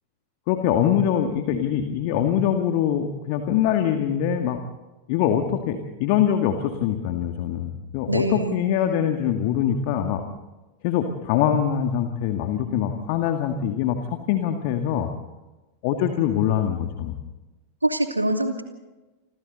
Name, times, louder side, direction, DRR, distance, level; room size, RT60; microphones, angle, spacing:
voice 1, 0.5-4.6 5.1-10.2 10.8-15.1 15.8-17.1, left 9 dB, 45° left, 6 dB, 2.0 m, -23 dB
voice 2, 8.1-8.6 17.8-18.6, right 1 dB, 85° right, 5 dB, 2.6 m, -24 dB
29.0 x 25.5 x 4.1 m, 1.1 s
figure-of-eight pair, 90°, 0 cm